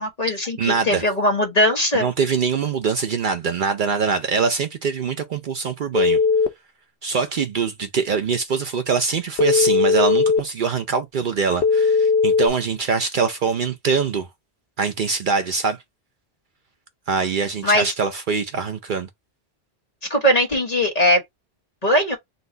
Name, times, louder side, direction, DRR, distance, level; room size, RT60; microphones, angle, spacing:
voice 1, 0.0-2.1 17.6-17.9 20.1-21.2 21.8-22.2, equal, 40° left, 1.3 m, -20 dB
voice 2, 0.6-1.0 1.9-6.2 7.0-14.3 14.8-15.8 17.1-19.1, right 5 dB, 60° right, 0.7 m, -23 dB
Telephone, 5.9-6.5 9.4-10.4 11.6-12.5, left 5 dB, 70° left, 0.9 m, -17 dB
4.0 x 2.4 x 3.8 m
omnidirectional pair, 1.1 m